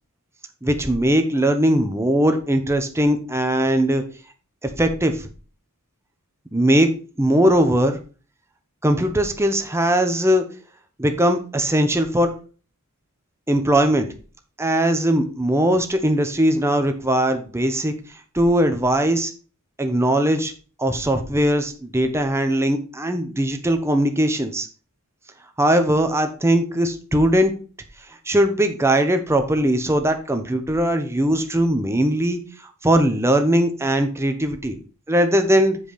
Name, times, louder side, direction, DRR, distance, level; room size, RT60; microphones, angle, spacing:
voice 1, 0.6-4.0 4.6-5.3 6.5-6.9 7.2-8.0 8.8-10.4 11.0-12.3 13.5-14.1 14.6-17.9 18.3-19.3 19.8-20.5 20.8-24.7 25.6-27.5 28.3-34.8 35.1-35.8, right 1 dB, 10° right, 6 dB, 0.9 m, -20 dB
7.4 x 4.9 x 5.0 m, 0.37 s
head